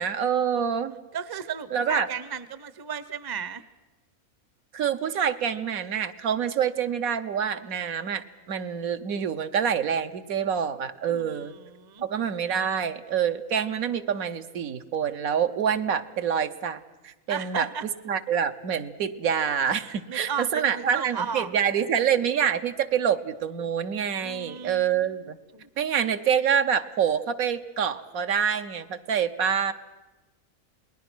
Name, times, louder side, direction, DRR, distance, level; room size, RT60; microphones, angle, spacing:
voice 1, 0.0-1.0 1.7-2.1 4.7-11.5 12.0-17.7 18.0-25.4 25.8-29.7, right 7 dB, 80° right, 8 dB, 1.4 m, -26 dB
voice 2, 1.1-3.6 11.1-12.1 17.3-17.8 19.9-21.5 24.2-25.1 25.5-25.7, right 7 dB, 25° right, 15 dB, 0.5 m, -35 dB
28.0 x 20.0 x 6.2 m, 1.1 s
omnidirectional pair, 1.5 m